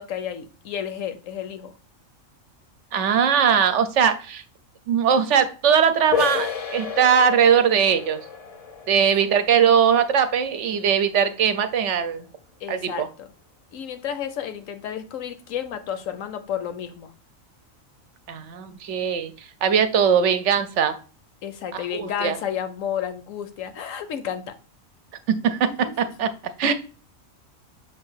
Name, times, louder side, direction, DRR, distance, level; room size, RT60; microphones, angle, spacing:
voice 1, 0.0-1.7 12.6-13.3 13.7-17.1 21.4-24.5 25.9-26.0, left 9 dB, 75° left, 9 dB, 1.1 m, -31 dB
voice 2, 2.9-4.4 4.9-8.2 8.9-12.2 12.7-13.1 18.3-19.3 19.6-20.9 21.7-22.4 25.3-26.3 26.6-26.7, right 7 dB, 65° right, 11 dB, 0.9 m, -20 dB
sound 1, 6.1-11.6, left 7 dB, 40° left, 0.5 m, -32 dB
6.6 x 2.6 x 5.6 m, 0.37 s
omnidirectional pair, 1.4 m